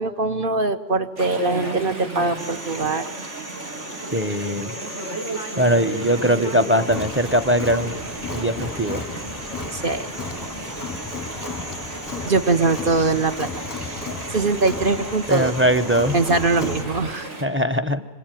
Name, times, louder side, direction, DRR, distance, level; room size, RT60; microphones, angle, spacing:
voice 1, 0.0-3.0 9.7-10.1 12.2-15.5 16.1-17.3, right 3 dB, 50° right, 8 dB, 1.3 m, -22 dB
Chatter / Stream, 1.2-17.4, right 1 dB, 80° right, 3.4 m, -34 dB
sound 1, 2.4-16.8, right 1 dB, 25° right, 1.6 m, -41 dB
voice 2, 4.1-4.7 5.6-7.9 8.3-9.0 15.3-16.2 17.4-18.0, equal, 10° right, 12 dB, 0.8 m, -21 dB
Crowd, 6.9-17.1, left 4 dB, 20° left, 0.8 m, -34 dB
26.0 x 25.0 x 9.2 m, 1.2 s
omnidirectional pair, 1.2 m